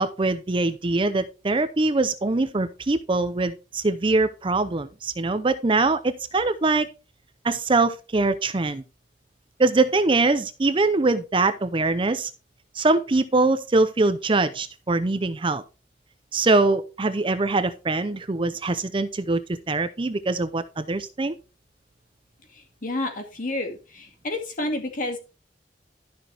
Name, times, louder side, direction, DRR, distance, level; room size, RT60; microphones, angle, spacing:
voice 1, 0.0-6.9 7.4-8.8 9.6-12.3 12.8-15.6 16.3-19.4 19.7-21.4, right 3 dB, 30° right, 0.6 m, -23 dB
voice 2, 22.5-25.2, left 2 dB, 50° left, 2.2 m, -30 dB
12.5 x 6.1 x 3.4 m
head